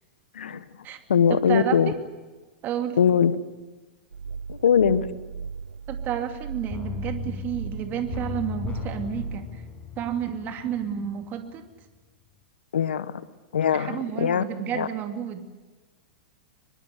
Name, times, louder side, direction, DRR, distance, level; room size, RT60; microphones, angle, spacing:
voice 1, 0.3-0.6 1.1-1.9 3.0-3.4 4.5-5.1 12.7-13.1 13.5-14.4 14.7-14.9, left 7 dB, 75° left, 15 dB, 1.4 m, -21 dB
voice 2, 1.3-1.9 2.6-3.0 5.9-9.6 10.0-11.7 13.7-15.4, right 9 dB, 35° right, 6 dB, 2.6 m, -31 dB
sound 1, 4.1-9.4, right 6 dB, 90° right, 0.7 m, -37 dB
sound 2, 6.7-11.4 11.7-11.8, left 7 dB, 25° left, 6.4 m, -37 dB
24.0 x 22.5 x 8.1 m, 1.2 s
hypercardioid pair, 105°, 5 cm